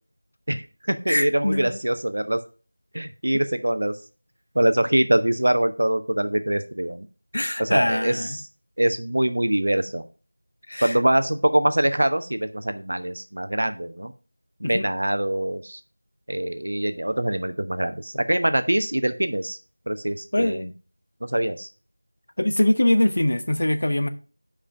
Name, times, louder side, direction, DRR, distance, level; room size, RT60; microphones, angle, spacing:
voice 1, 0.5-2.4 2.9-3.9 4.5-7.1 7.6-8.4 8.8-10.1 10.8-14.1 14.6-15.8 16.3-19.6 19.9-20.7 21.2-21.7, right 1 dB, 60° right, 0.9 m, -23 dB
voice 2, 1.1-1.8 7.3-8.4 10.7-11.0 14.6-14.9 20.3-20.7 22.4-24.1, left 1 dB, 55° left, 0.9 m, -23 dB
5.5 x 4.9 x 5.9 m
figure-of-eight pair, 175°, 0 cm